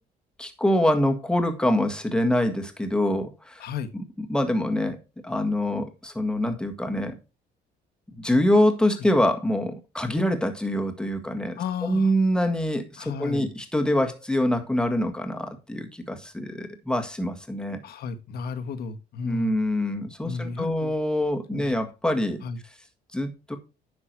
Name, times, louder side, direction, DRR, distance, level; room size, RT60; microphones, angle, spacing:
voice 1, 0.4-3.6 3.9-4.0 4.3-5.0 5.2-7.1 8.1-17.8 19.2-22.4 23.1-23.6, left 1 dB, 5° left, 1.7 m, -25 dB
voice 2, 11.6-12.1 13.0-13.5 17.8-19.5 20.2-20.9 21.5-21.7 22.4-22.6, left 5 dB, 65° left, 1.4 m, -33 dB
9.9 x 6.0 x 4.6 m
cardioid pair, 110°, 17 cm